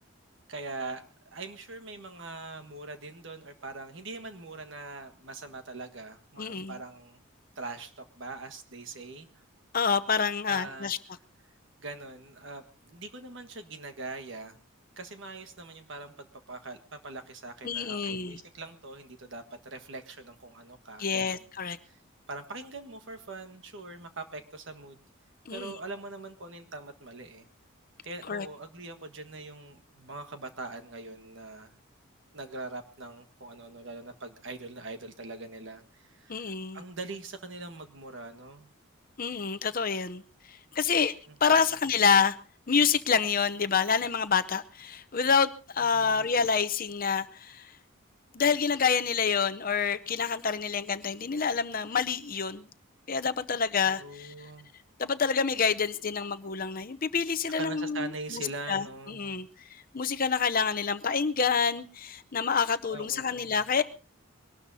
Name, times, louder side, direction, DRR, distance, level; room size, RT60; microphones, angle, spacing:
voice 1, 0.5-7.2 7.5-9.4 10.5-10.9 11.8-14.6 15.0-21.4 21.8-22.0 22.3-25.1 25.5-27.5 28.0-31.8 32.3-38.7 41.3-41.4 45.9-46.2 53.8-54.7 57.5-59.3 62.9-63.5, right 3 dB, 60° right, 8 dB, 1.6 m, -42 dB
voice 2, 6.4-6.8 9.7-11.0 17.6-18.4 21.0-21.8 25.5-25.7 28.3-28.5 36.3-36.8 39.2-40.2 40.5-41.1 41.4-42.4 42.7-47.7 48.3-52.7 53.1-54.3 55.0-63.8, left 6 dB, 40° left, 11 dB, 0.7 m, -27 dB
23.0 x 18.5 x 2.8 m, 0.35 s
head